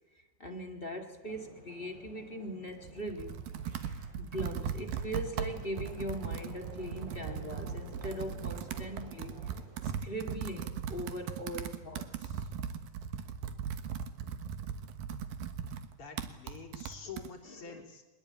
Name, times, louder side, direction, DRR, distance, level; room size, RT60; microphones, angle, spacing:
voice 1, 0.4-3.4 4.2-9.4 9.8-12.5 17.6-17.8, equal, 25° left, 3 dB, 1.4 m, -40 dB
sound 1, 1.2-10.0, right 1 dB, 30° right, 5.6 m, -53 dB
Computer keyboard, 2.7-17.3, right 7 dB, 80° right, 3.0 m, -39 dB
voice 2, 14.0-14.4 15.7-18.0, left 6 dB, 40° left, -1 dB, 4.4 m, -48 dB
23.0 x 21.0 x 8.8 m, 1.1 s
omnidirectional pair, 4.0 m